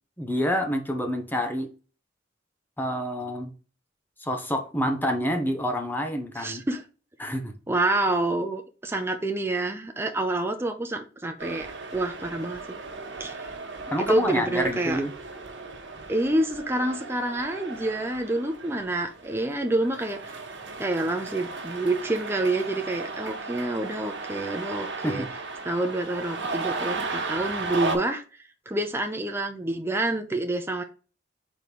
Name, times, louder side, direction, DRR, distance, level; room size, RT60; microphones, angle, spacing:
voice 1, 0.2-1.7 2.8-3.5 4.2-6.6 7.2-7.5 13.9-15.1 25.0-25.3, equal, 10° left, 1.1 m, -27 dB
voice 2, 6.4-6.8 7.7-11.7 11.9-12.8 13.2-13.5 14.0-15.0 16.1-20.4 20.8-25.2 25.6-28.2 28.7-30.8, right 2 dB, 15° right, 0.6 m, -28 dB
sound 1, 11.4-27.9, right 3 dB, 70° right, 1.5 m, -36 dB
4.7 x 3.9 x 5.2 m
head